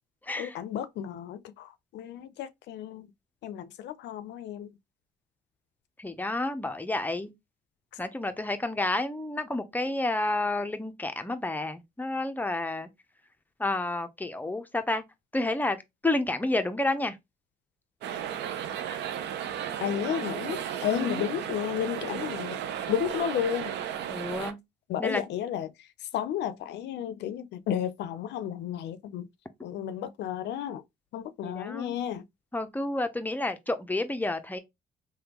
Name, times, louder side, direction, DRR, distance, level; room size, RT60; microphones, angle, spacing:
voice 1, 0.4-3.1 3.4-4.7 19.8-22.6 22.9-23.7 24.9-29.3 29.6-30.8 31.1-32.2, left 10 dB, 80° left, 0.4 m, -32 dB
voice 2, 6.0-7.3 8.0-12.9 13.6-15.0 15.3-17.2 20.9-21.2 24.1-24.6 25.0-25.2 31.4-31.9 32.5-34.6, left 2 dB, 10° left, 0.5 m, -30 dB
sound 1, 18.0-24.5, right 9 dB, 80° right, 0.4 m, -34 dB
3.4 x 2.2 x 2.9 m
cardioid pair, 100°, 18 cm